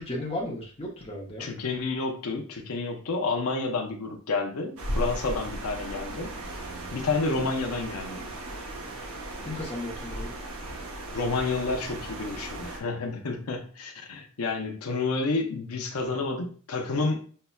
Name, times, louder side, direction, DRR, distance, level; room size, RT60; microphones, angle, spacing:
voice 1, 0.0-1.5 9.4-10.3 14.8-15.0, left 1 dB, 25° left, -2 dB, 0.7 m, -35 dB
voice 2, 1.4-6.3 6.9-8.3 11.1-17.2, left 3 dB, 85° left, 3 dB, 0.6 m, -30 dB
sound 1, 4.8-12.8, right 1 dB, 75° right, 0.8 m, -36 dB
5.4 x 2.1 x 2.3 m, 0.42 s
head